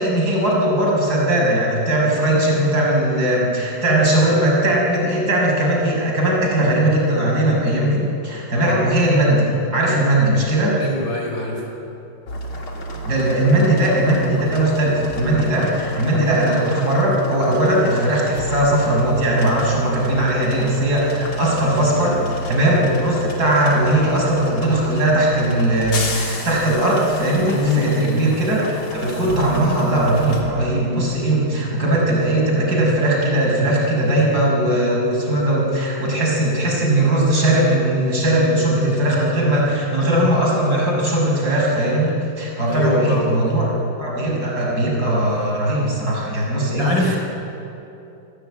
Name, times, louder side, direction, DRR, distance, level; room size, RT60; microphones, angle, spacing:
voice 1, 0.0-10.8 13.1-43.7 44.0-47.2, right 1 dB, 50° right, -3 dB, 7.1 m, -19 dB
voice 2, 10.8-11.6 21.7-22.3 27.5-27.9 42.7-43.4 46.8-47.2, left 2 dB, 65° left, 0 dB, 5.7 m, -24 dB
sound 1, 12.3-30.4, right 1 dB, 85° left, 4.1 m, -31 dB
28.5 x 19.0 x 9.2 m, 2.8 s
omnidirectional pair, 2.2 m